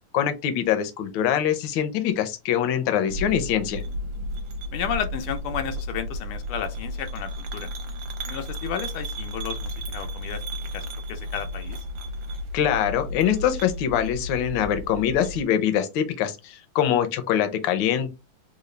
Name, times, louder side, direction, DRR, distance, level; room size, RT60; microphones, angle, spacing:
voice 1, 0.1-3.8 12.5-18.1, left 9 dB, 70° left, 1.3 m, -24 dB
sound 1, 3.1-15.4, equal, 70° right, 1.4 m, -33 dB
voice 2, 4.7-7.7 8.3-10.4 10.7-11.8, left 8 dB, 90° left, 1.5 m, -32 dB
3.8 x 2.3 x 3.1 m
omnidirectional pair, 2.3 m